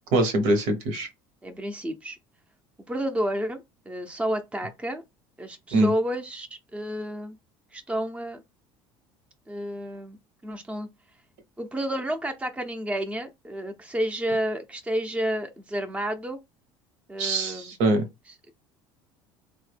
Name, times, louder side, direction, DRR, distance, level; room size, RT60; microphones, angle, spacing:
voice 1, 0.1-1.1 5.7-5.9 17.2-18.0, right 1 dB, 70° right, 1.0 m, -23 dB
voice 2, 1.4-2.2 2.9-5.0 5.4-7.4 7.7-8.4 9.5-10.2 10.4-10.9 11.6-16.4 17.1-17.7, equal, 10° right, 0.6 m, -30 dB
3.4 x 2.1 x 3.3 m
supercardioid pair, 85°, 12 cm